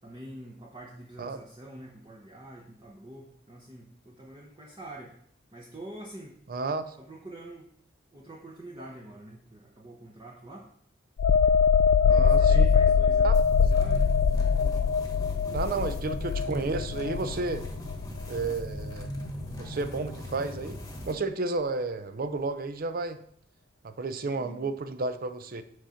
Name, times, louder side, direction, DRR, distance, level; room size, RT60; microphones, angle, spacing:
voice 1, 0.0-5.2 5.5-6.4 7.0-7.7 8.1-10.7 12.1-14.1 15.2-16.0 24.3-24.7, right 1 dB, 25° right, -2 dB, 0.9 m, -45 dB
voice 2, 6.5-7.0 12.1-12.7 13.2-13.3 15.5-17.6 18.3-19.1 19.6-20.8 21.1-23.2 23.8-25.6, right 3 dB, 50° right, 11 dB, 0.6 m, -32 dB
sound 1, 11.2-18.6 19.0-19.2, left 5 dB, 85° left, 0.3 m, -23 dB
sound 2, 13.3-21.1, equal, 20° left, 1.2 m, -39 dB
6.5 x 5.0 x 5.7 m, 0.66 s
head